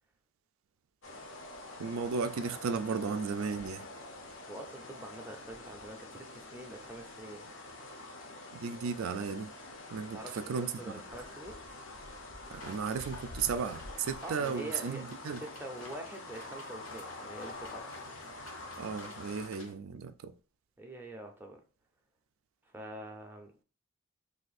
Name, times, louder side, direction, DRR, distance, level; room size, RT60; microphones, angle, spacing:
sound 1, 1.0-19.5, left 2 dB, 65° left, 0.7 m, -46 dB
voice 1, 1.8-3.8 8.5-9.5 9.9-11.0 12.5-15.4 18.8-20.3, right 5 dB, 80° right, 0.3 m, -35 dB
voice 2, 4.5-7.5 10.1-11.6 14.2-15.1 15.4-17.9 20.8-21.6 22.6-23.6, right 1 dB, 10° right, 0.5 m, -45 dB
sound 2, 12.6-19.7, left 2 dB, 85° left, 1.5 m, -52 dB
2.7 x 2.5 x 4.0 m
head